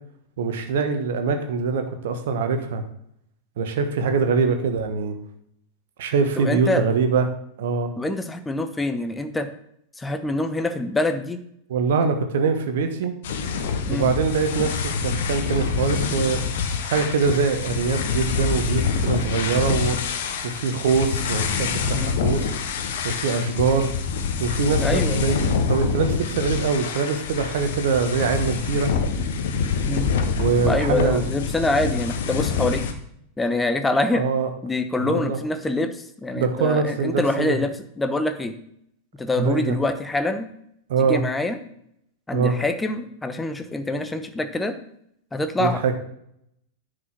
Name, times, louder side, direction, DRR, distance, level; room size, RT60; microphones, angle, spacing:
voice 1, 0.4-2.8 3.6-5.2 6.0-7.3 7.6-7.9 11.7-13.2 13.9-16.4 16.8-20.0 20.4-22.5 23.0-23.9 24.4-25.4 25.7-28.9 30.4-31.3 34.1-34.5 35.0-35.4 36.3-37.6 39.4-39.8 40.9-41.2 42.3-42.6 45.6-45.9, right 5 dB, 55° right, 7 dB, 1.3 m, -23 dB
voice 2, 6.4-6.8 8.0-9.5 10.0-11.4 13.9-14.1 21.9-22.2 24.8-25.2 29.9-30.1 30.6-32.8 33.4-34.2 34.6-38.5 39.2-40.5 41.0-41.6 42.3-44.7 45.3-45.9, left 2 dB, 10° left, 8 dB, 1.0 m, -25 dB
sound 1, 13.2-32.9, left 5 dB, 55° left, 1.1 m, -26 dB
9.7 x 5.1 x 5.9 m, 0.72 s
figure-of-eight pair, 90°, 0 cm